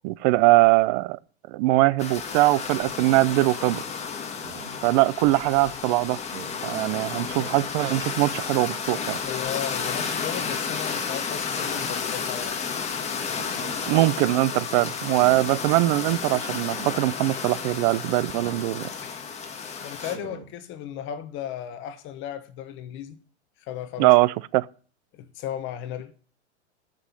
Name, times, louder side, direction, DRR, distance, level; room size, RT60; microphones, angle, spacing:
voice 1, 0.0-1.2 1.5-3.8 4.8-6.2 6.6-9.2 13.9-18.9 24.0-24.7, right 19 dB, 40° right, 0.6 m, -21 dB
sound 1, 2.0-20.2, left 6 dB, 20° left, 1.6 m, -32 dB
Speech synthesizer, 2.9-3.2 4.4-4.9 6.3-6.6 7.8-8.3 9.6-10.1 11.4-12.0 13.3-13.8 15.1-15.5 16.7-17.0 18.3-18.7 20.0-20.5, right 7 dB, 70° right, 2.8 m, -43 dB
voice 2, 9.2-12.6 19.0-19.2 19.8-23.2 23.6-24.1 25.1-26.1, left 10 dB, 35° left, 1.2 m, -35 dB
13.0 x 6.1 x 9.7 m
hypercardioid pair, 125°, 34 cm